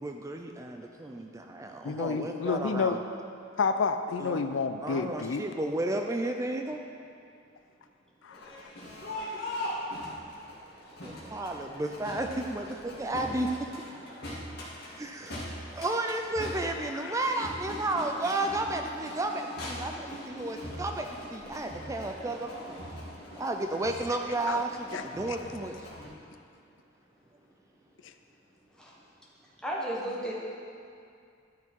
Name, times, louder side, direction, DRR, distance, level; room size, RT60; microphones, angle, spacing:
voice 1, 0.0-3.0 4.2-4.4 4.8-6.8 11.0-14.0 14.5-14.7 15.0-21.1 21.3-22.8 23.3-25.8, right 2 dB, 15° right, 4 dB, 0.4 m, -33 dB
voice 2, 1.8-3.0 3.6-5.4 8.2-8.5 16.9-17.2 24.5-24.6 24.9-25.4, left 5 dB, 75° left, 9 dB, 0.5 m, -30 dB
Crowd, 8.3-26.1, left 1 dB, 55° left, 2.0 m, -41 dB
voice 3, 29.6-30.3, right 1 dB, 5° left, -5 dB, 1.3 m, -33 dB
12.0 x 5.6 x 4.5 m, 2.4 s
head